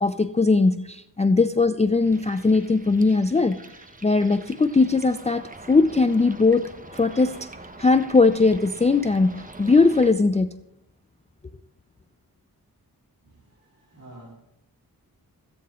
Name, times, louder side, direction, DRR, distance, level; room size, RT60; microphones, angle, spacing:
voice 1, 0.0-3.6 4.0-6.6 6.9-7.5 7.8-10.5, left 3 dB, 20° left, 10 dB, 0.4 m, -20 dB
sound 1, 2.0-10.1, right 2 dB, 20° right, 0.9 m, -44 dB
voice 2, 13.2-14.3, right 1 dB, 45° right, -6 dB, 3.0 m, -48 dB
14.5 x 9.4 x 3.6 m, 0.85 s
wide cardioid pair, 60°, 38 cm